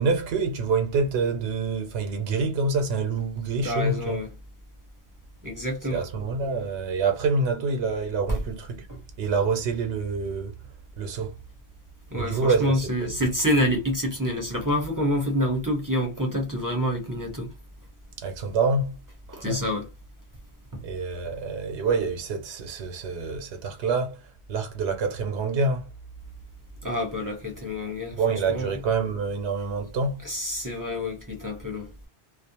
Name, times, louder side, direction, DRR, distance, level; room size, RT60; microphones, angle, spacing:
voice 1, 0.0-4.2 5.9-8.9 9.2-10.6 11.0-11.4 12.1-13.1 18.2-19.0 19.3-19.6 20.8-25.9 28.2-30.2, right 4 dB, 90° right, 0.9 m, -27 dB
voice 2, 3.6-4.3 5.4-6.1 8.3-8.4 8.9-9.0 12.1-17.5 19.3-19.9 20.7-20.8 26.8-28.2 28.5-28.8 30.2-31.9, left 1 dB, 25° right, 0.6 m, -27 dB
2.4 x 2.0 x 2.8 m
omnidirectional pair, 1.1 m